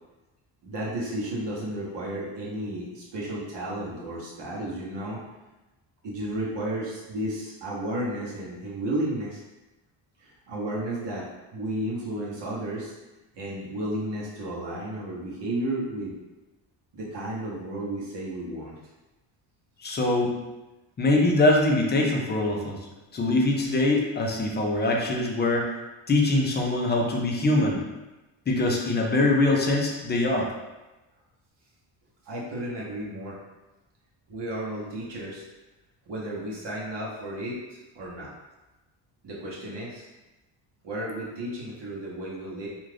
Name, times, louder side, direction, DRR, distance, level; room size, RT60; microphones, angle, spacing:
voice 1, 0.6-5.2 6.0-9.4 10.2-11.3 11.5-12.9 13.3-16.1 16.9-18.8 32.3-33.4 34.3-35.4 36.1-38.3 39.2-40.1 40.8-42.7, right 1 dB, 55° right, -5 dB, 1.0 m, -33 dB
voice 2, 19.8-20.3 21.0-22.8 23.1-25.7 26.1-27.8 28.5-30.5, left 2 dB, 25° left, -1 dB, 0.4 m, -23 dB
2.5 x 2.4 x 3.3 m, 1.1 s
cardioid pair, 115°, 49 cm